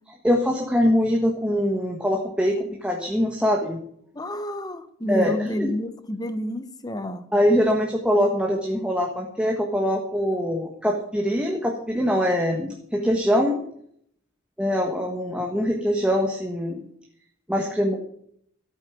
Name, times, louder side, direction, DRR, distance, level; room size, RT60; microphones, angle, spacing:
voice 1, 0.2-3.8 5.1-5.7 7.3-13.6 14.6-16.8 17.5-18.0, equal, 5° right, 1 dB, 1.4 m, -23 dB
voice 2, 4.1-7.3, left 1 dB, 20° left, 10 dB, 1.0 m, -29 dB
13.5 x 8.4 x 6.1 m, 0.66 s
head